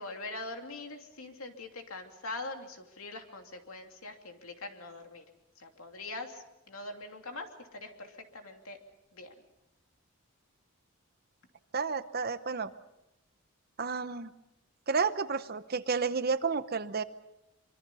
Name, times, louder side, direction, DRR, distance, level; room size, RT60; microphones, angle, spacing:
voice 1, 0.0-5.2 5.6-8.8 9.1-9.3, left 2 dB, 75° left, 4 dB, 2.8 m, -43 dB
voice 2, 11.7-12.7 13.8-14.3 14.9-17.0, right 5 dB, 45° right, 12 dB, 0.9 m, -31 dB
25.0 x 24.5 x 5.6 m, 0.93 s
head